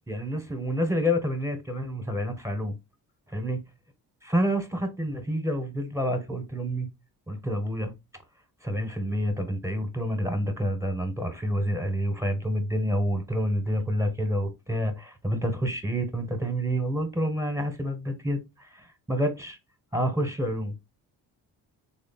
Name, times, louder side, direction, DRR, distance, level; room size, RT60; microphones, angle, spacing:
voice 1, 0.1-2.7 3.3-3.6 4.2-6.9 7.3-7.9 8.6-19.6 19.9-20.8, equal, 5° right, 0.9 m, -28 dB
3.1 x 2.1 x 4.0 m
supercardioid pair, 65°, 43 cm